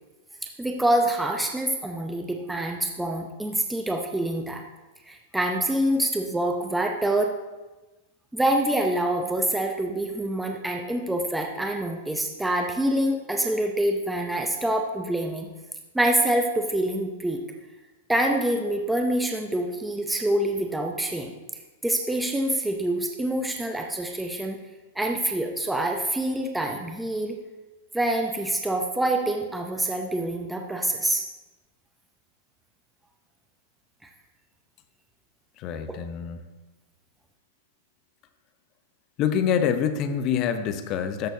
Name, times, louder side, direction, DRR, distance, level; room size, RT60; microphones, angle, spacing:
voice 1, 0.4-4.6 5.1-7.3 8.3-15.5 15.9-17.4 18.1-21.3 21.8-24.6 24.9-27.4 27.9-31.3 34.0-34.1, right 1 dB, 5° right, 2 dB, 0.6 m, -26 dB
voice 2, 35.6-36.4 39.2-41.3, left 8 dB, 35° left, 10 dB, 0.7 m, -26 dB
13.0 x 6.3 x 2.7 m, 1.1 s
hypercardioid pair, 145°, 0 cm